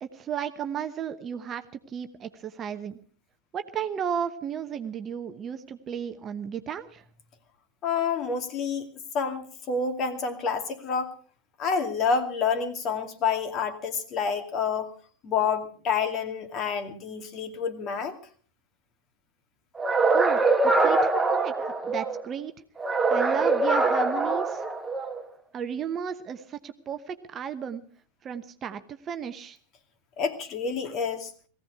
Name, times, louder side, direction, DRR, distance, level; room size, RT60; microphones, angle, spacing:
voice 1, 0.0-3.0 3.5-7.0 20.1-22.5 23.1-24.6 25.5-27.8 28.2-29.6, right 8 dB, 25° right, 9 dB, 1.0 m, -34 dB
voice 2, 7.8-8.9 9.1-11.1 11.6-14.9 15.2-18.1 30.2-31.3, left 5 dB, 30° left, 7 dB, 2.4 m, -28 dB
sound 1, 19.8-22.2 22.8-25.2, right 3 dB, 10° right, 1.6 m, -23 dB
19.0 x 16.0 x 4.7 m, 0.42 s
figure-of-eight pair, 90°, 0 cm